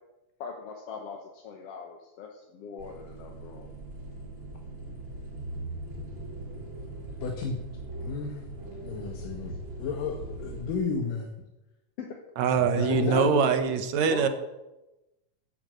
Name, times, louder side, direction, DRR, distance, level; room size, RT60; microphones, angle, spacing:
voice 1, 0.4-3.7 12.0-12.1 12.9-13.4 13.7-13.8 14.1-14.3, left 5 dB, 55° left, 2 dB, 2.0 m, -38 dB
sound 1, 2.8-10.8, right 2 dB, 35° right, 4.2 m, -40 dB
voice 2, 7.2-7.6 8.0-8.4 8.8-11.3 12.6-13.3, left 4 dB, 80° left, 2 dB, 3.0 m, -32 dB
voice 3, 12.4-14.3, right 6 dB, 65° right, 9 dB, 2.3 m, -23 dB
11.0 x 10.5 x 7.8 m, 0.99 s
omnidirectional pair, 3.7 m